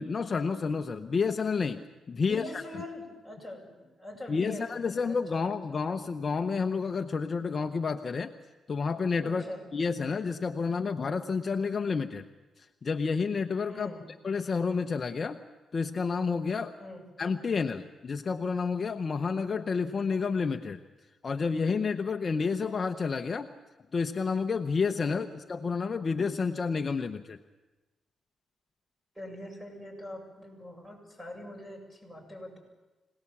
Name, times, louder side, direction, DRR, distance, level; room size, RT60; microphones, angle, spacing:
voice 1, 0.0-2.4 4.3-8.3 8.7-9.4 9.7-12.3 12.6-13.9 14.2-15.4 15.7-16.7 17.2-20.8 21.2-23.5 23.9-27.4, left 5 dB, 40° left, 7 dB, 0.8 m, -30 dB
voice 2, 2.2-5.4 9.2-9.6 13.7-14.0 16.8-17.0 25.0-25.3 29.1-32.6, left 1 dB, 5° right, 2 dB, 7.7 m, -43 dB
26.0 x 18.5 x 7.2 m, 1.1 s
cardioid pair, 110°, 0 cm